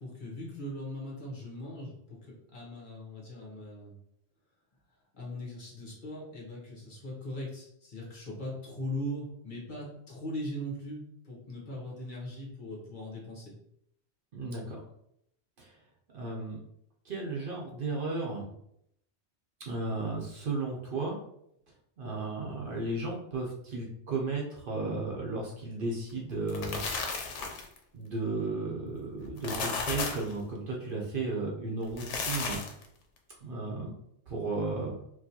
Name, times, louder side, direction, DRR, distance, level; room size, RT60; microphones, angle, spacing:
voice 1, 0.0-3.9 5.1-13.5, left 1 dB, 45° left, -5 dB, 1.1 m, -40 dB
voice 2, 14.3-14.8 15.6-15.8 16.1-16.6 17.0-18.5 19.6-21.2 22.0-26.8 27.9-32.6 33.4-33.9 34.3-35.0, right 3 dB, 55° right, -2 dB, 0.8 m, -34 dB
sound 1, 26.3-27.8 29.2-30.3 31.8-32.9, left 4 dB, 85° left, 1.0 m, -34 dB
4.6 x 2.2 x 2.8 m, 0.75 s
omnidirectional pair, 1.2 m